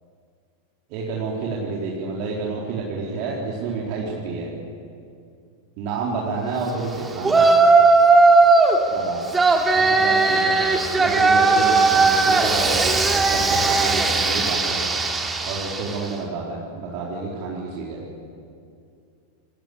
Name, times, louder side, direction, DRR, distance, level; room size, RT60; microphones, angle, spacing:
voice 1, 0.9-4.5 5.8-7.5 8.9-9.2 9.7-10.6 11.0-13.0 13.3-14.8 15.5-18.0, right 4 dB, 45° right, -4 dB, 4.2 m, -29 dB
Yell, 7.2-8.8 9.3-16.1, right 3 dB, 10° right, 2.8 m, -17 dB
28.5 x 22.0 x 7.0 m, 2.4 s
figure-of-eight pair, 90°, 0 cm